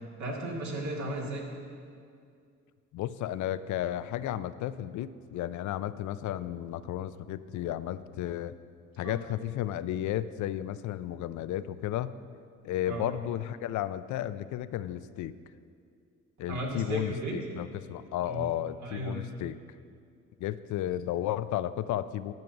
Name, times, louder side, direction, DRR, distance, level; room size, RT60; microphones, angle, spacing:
voice 1, 0.2-1.4 9.0-9.2 12.9-13.1 16.5-17.3 18.2-18.5 18.8-19.2, right 1 dB, 65° right, -1 dB, 2.1 m, -35 dB
voice 2, 2.9-8.5 9.0-12.1 12.6-15.4 16.4-19.6 20.4-22.3, left 12 dB, 75° left, 14 dB, 0.4 m, -33 dB
10.5 x 5.2 x 7.1 m, 2.3 s
cardioid pair, 90°, 30 cm